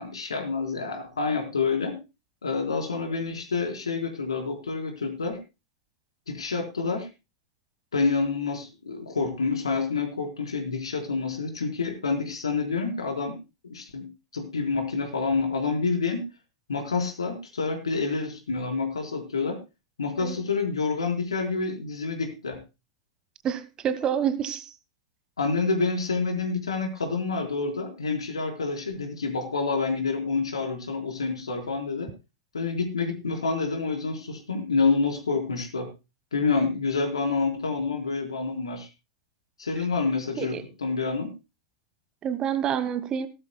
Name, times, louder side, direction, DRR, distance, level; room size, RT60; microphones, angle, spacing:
voice 1, 0.0-2.0 2.4-5.4 6.3-7.1 7.9-13.4 13.6-14.0 14.3-16.2 16.7-19.6 20.0-22.6 25.4-32.1 32.5-35.9 36.3-38.9 39.6-41.3, left 4 dB, 70° left, 4.1 m, -28 dB
voice 2, 23.4-24.7 40.4-40.6 42.2-43.3, right 8 dB, 25° right, 1.2 m, -27 dB
19.0 x 13.0 x 2.3 m
figure-of-eight pair, 95°, 3 cm